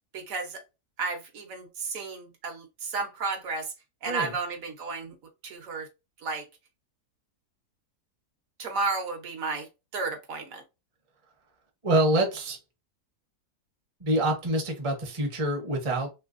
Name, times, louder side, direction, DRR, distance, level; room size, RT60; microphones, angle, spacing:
voice 1, 0.1-0.6 1.0-3.7 4.0-5.1 5.4-5.9 6.2-6.5 8.6-9.7 9.9-10.6, right 4 dB, 65° right, 1.2 m, -32 dB
voice 2, 4.1-4.4 11.8-12.6 14.0-16.1, right 1 dB, 25° right, 0.7 m, -26 dB
3.2 x 3.2 x 2.5 m
omnidirectional pair, 1.6 m